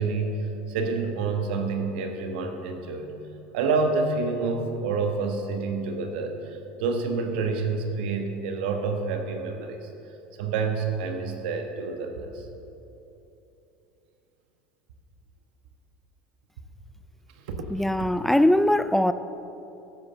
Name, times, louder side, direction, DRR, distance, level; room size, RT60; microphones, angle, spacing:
voice 1, 0.0-3.2 3.5-9.9 10.4-12.4 17.4-17.7 18.0-18.1, right 4 dB, 80° right, 1.3 m, -28 dB
voice 2, 17.7-19.1, left 1 dB, 5° left, 0.4 m, -21 dB
13.0 x 8.3 x 5.2 m
hypercardioid pair, 90°, 5 cm